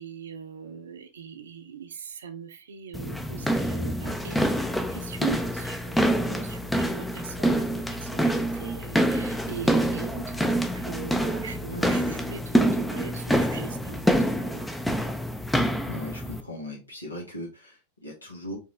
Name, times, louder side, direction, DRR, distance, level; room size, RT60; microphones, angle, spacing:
voice 1, 0.0-14.7, right 7 dB, 65° right, 0.7 m, -40 dB
sound 1, 2.9-16.4, equal, 5° left, 0.5 m, -26 dB
voice 2, 15.8-18.6, left 1 dB, 80° left, 1.8 m, -38 dB
4.5 x 3.0 x 3.3 m
figure-of-eight pair, 90°, 0 cm